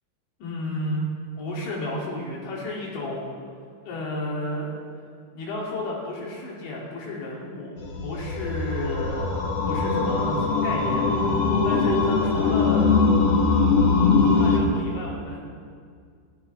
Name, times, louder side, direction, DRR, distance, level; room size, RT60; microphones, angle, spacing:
voice 1, 0.4-1.1 1.4-3.4 3.8-4.7 5.4-11.0 11.6-13.0 14.3-15.5, left 1 dB, 85° left, -4 dB, 5.1 m, -32 dB
sound 1, 7.8-14.6, left 4 dB, 60° left, 1.7 m, -21 dB
20.5 x 15.0 x 3.5 m, 2.1 s
omnidirectional pair, 5.1 m